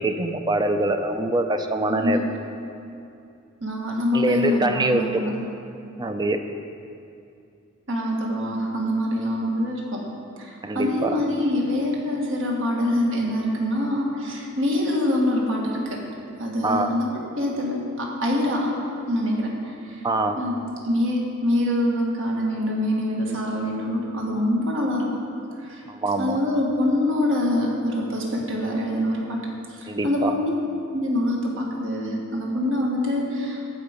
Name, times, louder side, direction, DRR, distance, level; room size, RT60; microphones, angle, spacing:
voice 1, 0.0-2.2 4.1-5.2 6.0-6.4 10.6-11.2 16.6-16.9 20.0-20.4 25.9-26.4 29.9-30.3, right 2 dB, 20° right, 7 dB, 0.5 m, -24 dB
voice 2, 1.9-2.2 3.6-5.4 7.9-10.0 10.4-16.0 16.4-18.8 19.1-20.0 20.4-20.6 20.8-25.1 25.6-25.8 26.2-29.4 29.7-30.5 30.9-33.7, left 1 dB, 65° right, -2 dB, 1.8 m, -25 dB
14.5 x 4.9 x 5.2 m, 2.6 s
head